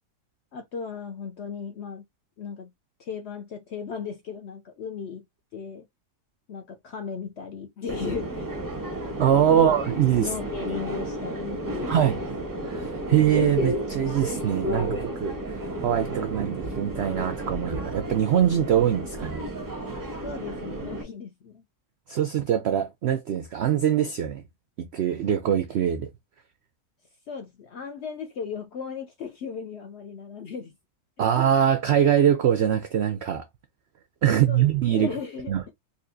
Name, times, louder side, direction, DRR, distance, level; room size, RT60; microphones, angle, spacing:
voice 1, 0.5-2.1 2.4-2.7 3.0-5.2 5.5-5.9 6.5-8.5 9.5-9.7 10.2-12.3 12.7-12.8 20.2-21.6 27.3-30.7 31.2-31.3 34.3-35.7, left 6 dB, 65° left, 0.7 m, -36 dB
Subway metro underground, 7.9-21.0, right 1 dB, 25° right, 0.4 m, -32 dB
voice 2, 9.2-10.3 11.9-12.2 12.6-19.4 22.1-24.4 24.8-26.1 31.2-33.4 34.2-35.1 35.5-35.6, right 9 dB, 75° right, 0.6 m, -23 dB
4.2 x 2.7 x 2.6 m
omnidirectional pair, 1.7 m